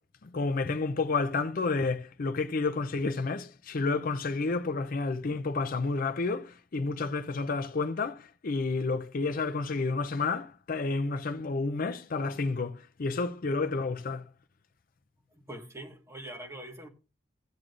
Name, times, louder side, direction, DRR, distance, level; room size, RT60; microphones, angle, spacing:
voice 1, 0.2-14.3, left 3 dB, 50° left, 0.5 m, -30 dB
voice 2, 15.3-16.9, right 1 dB, 15° right, 1.5 m, -43 dB
15.0 x 7.6 x 2.5 m
head